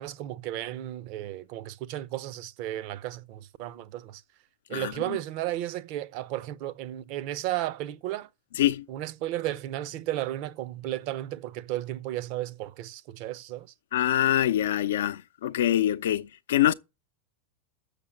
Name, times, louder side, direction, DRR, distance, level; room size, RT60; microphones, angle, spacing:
voice 1, 0.0-4.2 4.7-8.3 8.9-13.7, right 14 dB, 45° right, 0.7 m, -34 dB
voice 2, 13.9-16.7, left 12 dB, 60° left, 0.6 m, -24 dB
6.9 x 6.8 x 7.4 m
figure-of-eight pair, 90°, 0 cm